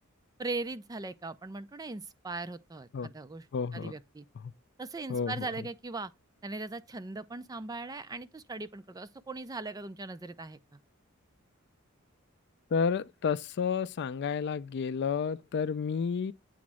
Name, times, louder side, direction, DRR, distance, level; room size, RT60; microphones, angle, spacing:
voice 1, 0.4-3.4 3.7-4.3 4.8-6.1 6.4-10.8, right 3 dB, 15° right, 0.4 m, -39 dB
voice 2, 3.5-3.9 4.4-4.5 5.1-5.7 12.7-16.3, left 6 dB, 55° left, 0.4 m, -31 dB
8.5 x 3.1 x 6.1 m
head